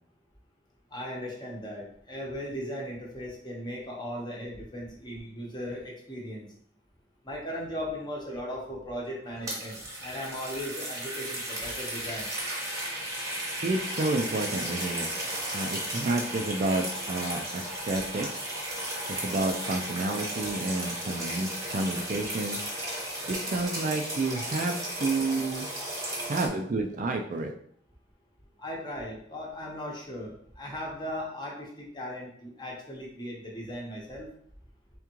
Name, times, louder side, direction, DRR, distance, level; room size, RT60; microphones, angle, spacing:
voice 1, 0.9-6.5 7.2-12.3 28.6-34.3, equal, 25° left, -2 dB, 0.9 m, -37 dB
sound 1, 9.2-26.5, right 1 dB, 20° right, 1.0 m, -35 dB
voice 2, 13.6-15.1 15.5-18.5 19.1-22.6 23.3-25.8 26.3-27.6, right 2 dB, 45° right, 3 dB, 0.4 m, -30 dB
3.6 x 3.5 x 3.0 m, 0.63 s
head